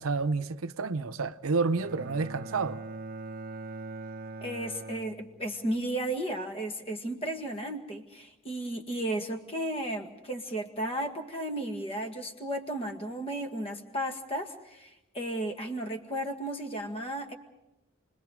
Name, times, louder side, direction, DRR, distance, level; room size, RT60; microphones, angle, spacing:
voice 1, 0.0-2.8, right 4 dB, 85° right, 0.7 m, -29 dB
Bowed string instrument, 1.7-5.8, right 3 dB, 45° right, 0.7 m, -42 dB
voice 2, 4.4-17.3, right 1 dB, 25° left, 1.9 m, -34 dB
29.0 x 21.0 x 5.1 m
head